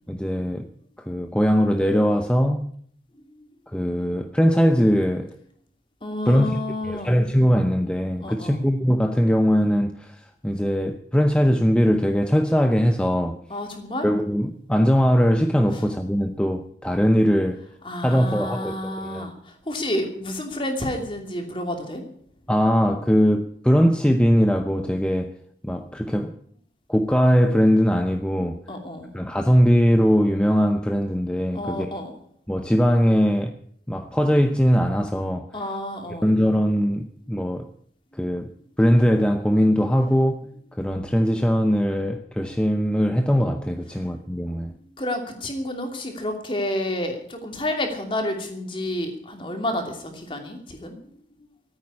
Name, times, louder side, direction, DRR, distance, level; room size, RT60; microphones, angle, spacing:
voice 1, 0.1-0.7 1.1-2.7 3.7-5.3 6.3-6.6 6.8-13.4 14.0-17.6 18.0-19.3 22.5-25.3 25.6-26.3 26.9-28.6 29.1-32.0 32.5-33.6 33.9-35.5 36.2-37.7 38.2-38.5 38.8-44.7, equal, 5° left, 0.6 m, -21 dB
voice 2, 6.0-7.2 8.2-8.6 13.5-14.1 17.8-22.0 28.7-29.1 31.5-32.1 35.5-36.3 45.0-50.9, left 1 dB, 30° left, 2.8 m, -30 dB
14.5 x 8.9 x 9.7 m
head